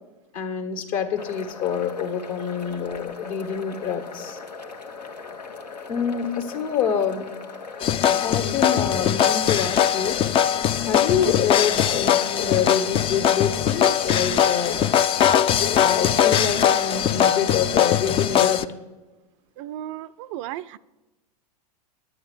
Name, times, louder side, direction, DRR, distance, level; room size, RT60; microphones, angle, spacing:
voice 1, 0.3-4.4 5.9-7.3 8.1-10.2 10.5-14.8 15.8-18.6, left 7 dB, 55° left, 7 dB, 1.7 m, -26 dB
sound 1, 1.2-18.7, left 4 dB, 85° left, 1.4 m, -39 dB
sound 2, 7.8-18.6, left 9 dB, 25° left, 0.5 m, -21 dB
voice 2, 19.6-20.8, right 12 dB, 45° right, 15 dB, 0.4 m, -34 dB
10.5 x 9.0 x 7.5 m, 1.1 s
figure-of-eight pair, 95°, 21 cm